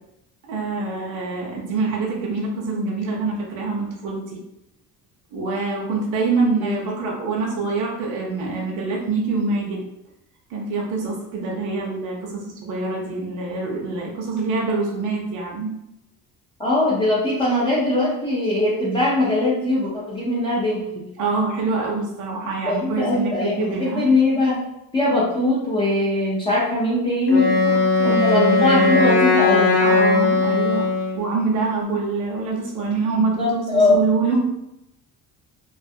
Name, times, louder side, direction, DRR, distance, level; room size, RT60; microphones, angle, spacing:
voice 1, 0.5-4.4 5.3-9.8 10.5-15.7 21.2-24.1 27.6-29.0 29.8-30.9 31.1-34.4, right 3 dB, 55° right, -2 dB, 0.6 m, -25 dB
voice 2, 6.6-6.9 16.6-20.8 22.6-24.6 24.9-27.6 28.0-29.8 33.4-34.0, left 2 dB, 15° left, -8 dB, 0.4 m, -21 dB
Wind instrument woodwind instrument, 27.3-31.3, left 3 dB, 50° left, 0.9 m, -18 dB
2.3 x 2.3 x 2.6 m, 0.86 s
cardioid pair, 170°, 37 cm